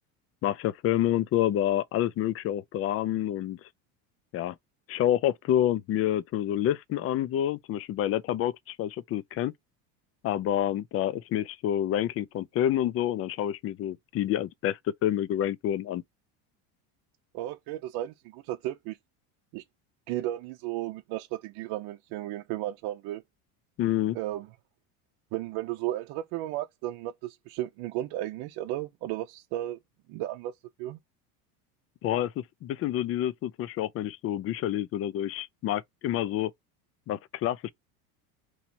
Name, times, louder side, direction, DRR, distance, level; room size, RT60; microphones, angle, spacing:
voice 1, 0.4-3.6 4.3-4.6 4.9-9.5 10.2-16.0 23.8-24.2 32.0-36.5 37.1-37.7, left 12 dB, 35° left, 0.4 m, -28 dB
voice 2, 17.3-19.0 19.5-19.6 20.1-23.2 24.1-24.5 25.3-29.8 30.1-30.5 30.8-31.0, right 15 dB, 60° right, 0.7 m, -34 dB
3.1 x 2.7 x 4.3 m
supercardioid pair, 100°, 43 cm